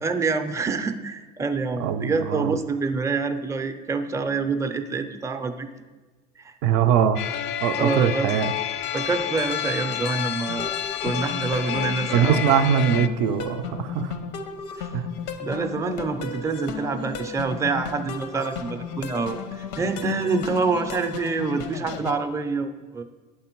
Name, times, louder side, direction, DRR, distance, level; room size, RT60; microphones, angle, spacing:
voice 1, 0.0-5.7 6.4-6.5 7.8-8.3 8.9-10.7 11.0-12.4 14.8-14.9 15.4-23.0, right 4 dB, 15° right, 8 dB, 0.4 m, -26 dB
voice 2, 1.8-2.6 6.6-7.2 7.6-8.5 12.1-14.1 14.9-15.1, right 8 dB, 70° right, 10 dB, 0.4 m, -22 dB
sound 1, 7.2-13.1, left 10 dB, 55° left, 0.4 m, -29 dB
sound 2, 10.5-22.1, left 5 dB, 80° left, 0.7 m, -35 dB
8.6 x 3.6 x 4.5 m, 1.3 s
supercardioid pair, 110°, 21 cm